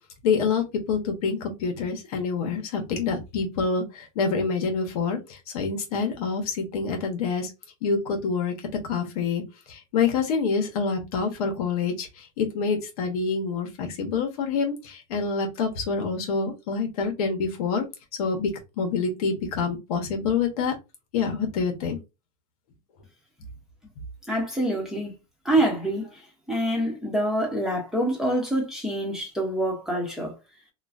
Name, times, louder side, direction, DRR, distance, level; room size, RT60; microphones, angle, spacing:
voice 1, 0.2-7.5 7.8-8.5 8.8-17.8 18.2-20.7 21.1-22.0, left 5 dB, 70° left, 1.0 m, -27 dB
voice 2, 24.3-25.1 25.4-26.2 26.5-30.3, right 1 dB, ahead, 1.0 m, -26 dB
3.0 x 2.3 x 2.4 m
supercardioid pair, 135°, 20 cm